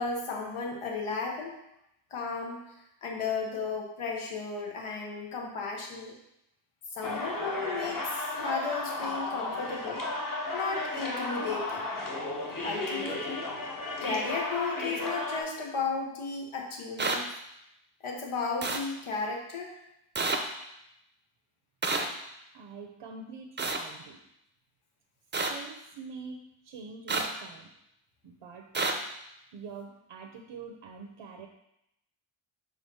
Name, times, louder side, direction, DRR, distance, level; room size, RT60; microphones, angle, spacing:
voice 1, 0.0-1.6 2.1-2.6 3.0-6.2 6.9-10.0 10.5-11.9 12.6-13.5 14.0-17.3 18.0-19.7, left 4 dB, 85° left, -1 dB, 1.2 m, -34 dB
sound 1, 7.0-15.4, left 2 dB, 40° left, 1.2 m, -34 dB
sound 2, 17.0-17.2 18.6-18.8 20.2-20.4 21.8-22.0 23.6-23.8 25.3-25.5 27.1-27.3 28.8-28.9, right 3 dB, 20° right, 0.6 m, -28 dB
voice 2, 22.5-24.2 25.5-26.4 26.6-27.7 28.2-28.7 29.5-31.5, right 4 dB, 80° right, 2 dB, 0.9 m, -44 dB
4.9 x 4.1 x 5.5 m, 0.82 s
wide cardioid pair, 125°, 49 cm